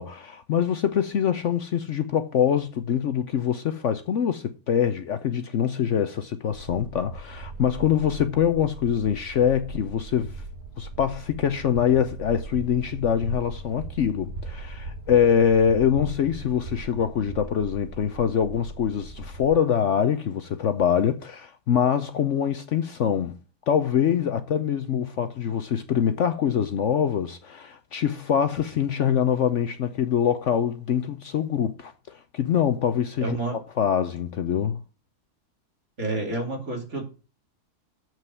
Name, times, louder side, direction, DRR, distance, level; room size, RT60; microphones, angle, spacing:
voice 1, 0.0-10.4 10.8-23.4 23.7-34.8, left 8 dB, 60° left, 0.9 m, -24 dB
sound 1, 6.5-19.5, right 2 dB, 65° right, 3.7 m, -39 dB
voice 2, 33.2-33.6 36.0-37.1, right 3 dB, 50° right, 3.3 m, -29 dB
7.7 x 6.0 x 6.9 m
omnidirectional pair, 1.6 m